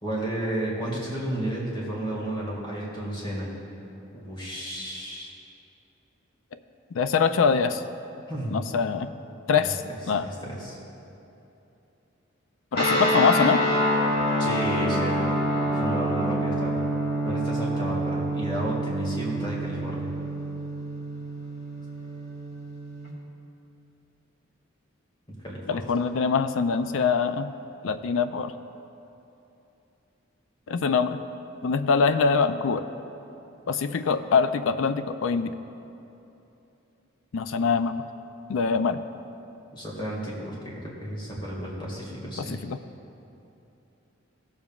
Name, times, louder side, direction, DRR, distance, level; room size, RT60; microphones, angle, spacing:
voice 1, 0.0-3.5 4.1-5.3 8.3-8.7 9.6-9.7 10.2-10.8 14.4-15.4 15.7-16.8 17.3-20.1 25.4-25.8 39.7-42.6, right 1 dB, 25° left, -4 dB, 1.9 m, -32 dB
voice 2, 6.9-7.8 8.5-9.1 9.5-9.8 10.1-10.3 12.7-13.6 25.7-27.5 27.8-28.5 30.7-31.2 31.6-32.9 33.7-35.6 37.3-38.0 38.5-39.0 42.5-42.8, left 5 dB, 80° left, 10 dB, 0.4 m, -23 dB
sound 1, 12.7-23.1, equal, 55° left, 1.7 m, -27 dB
17.0 x 7.1 x 2.4 m, 2.9 s
head